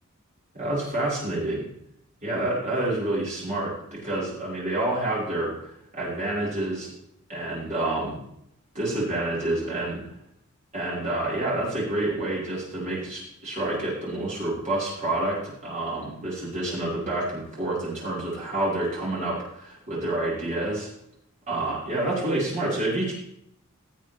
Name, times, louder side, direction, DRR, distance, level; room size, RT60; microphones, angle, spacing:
voice 1, 0.5-1.7 2.2-5.5 5.9-6.9 7.3-8.2 8.7-10.0 10.7-20.9 21.5-23.1, right 2 dB, 35° right, -7 dB, 5.4 m, -28 dB
17.0 x 7.4 x 3.6 m, 0.76 s
head